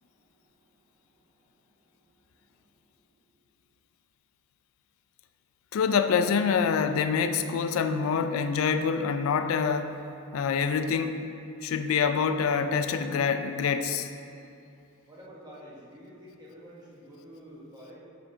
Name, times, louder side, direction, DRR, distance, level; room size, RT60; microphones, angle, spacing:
voice 1, 0.0-3.2 15.1-18.0, equal, 20° right, -6 dB, 1.0 m, -51 dB
voice 2, 5.7-10.0 10.3-11.2 11.6-14.1, left 6 dB, 70° left, 9 dB, 0.3 m, -26 dB
6.3 x 5.7 x 2.7 m, 2.8 s
head